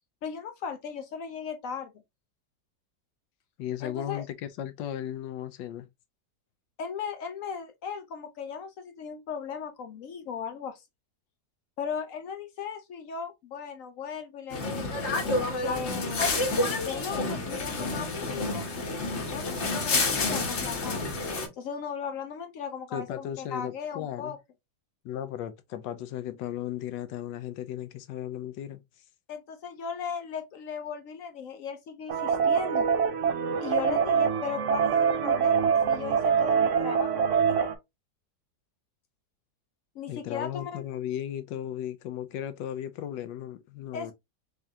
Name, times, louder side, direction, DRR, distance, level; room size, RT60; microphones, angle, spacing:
voice 1, 0.2-1.9 3.8-4.2 6.8-10.8 11.8-15.0 15.6-16.3 16.8-18.7 19.3-21.0 21.6-24.4 29.3-32.9 33.6-37.7 39.9-40.9 43.9-44.1, left 6 dB, 70° left, 0.8 m, -37 dB
voice 2, 3.6-5.9 22.9-24.4 25.0-28.8 40.1-44.1, left 11 dB, 85° left, 1.3 m, -36 dB
sound 1, 14.5-21.5, left 3 dB, 50° left, 1.1 m, -29 dB
sound 2, 32.1-37.7, right 7 dB, 65° right, 0.7 m, -24 dB
3.6 x 3.4 x 2.7 m
omnidirectional pair, 1.9 m